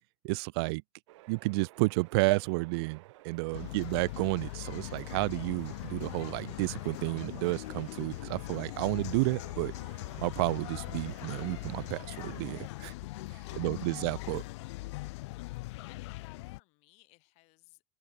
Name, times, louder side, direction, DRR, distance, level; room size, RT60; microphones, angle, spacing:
voice 1, 0.2-0.8 1.3-9.7 10.2-12.9 13.3-14.4, right 26 dB, 60° right, 0.5 m, -31 dB
sound 1, 1.1-12.7, right 19 dB, 85° right, 1.0 m, -55 dB
sound 2, 3.5-16.6, left 21 dB, 75° left, 1.1 m, -41 dB
voice 2, 3.5-4.1 13.4-15.0 15.4-17.8, left 27 dB, 50° left, 4.6 m, -62 dB
open air
supercardioid pair, 170°, 15 cm